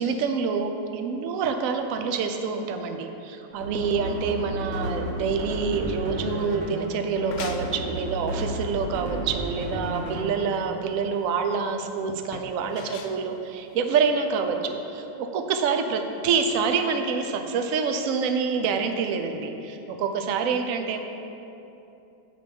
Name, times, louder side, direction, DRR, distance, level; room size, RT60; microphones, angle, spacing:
voice 1, 0.0-21.0, right 5 dB, 65° right, 6 dB, 0.9 m, -27 dB
sound 1, 3.5-10.6, right 1 dB, 45° right, 1.2 m, -32 dB
sound 2, 7.0-14.4, left 6 dB, 70° left, 0.7 m, -45 dB
8.5 x 5.2 x 5.3 m, 2.8 s
omnidirectional pair, 1.9 m